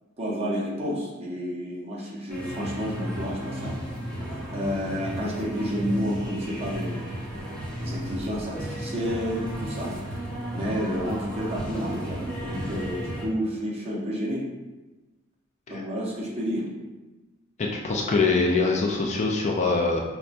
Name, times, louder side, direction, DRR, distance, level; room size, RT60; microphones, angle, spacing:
voice 1, 0.2-3.8 4.5-7.0 7.8-9.9 10.5-14.4 15.7-16.7, equal, 30° right, -5 dB, 0.9 m, -30 dB
sound 1, 2.3-13.3, equal, 5° left, 0.9 m, -34 dB
voice 2, 17.6-20.0, left 3 dB, 35° left, 0 dB, 0.3 m, -24 dB
5.5 x 2.1 x 2.5 m, 1.1 s
head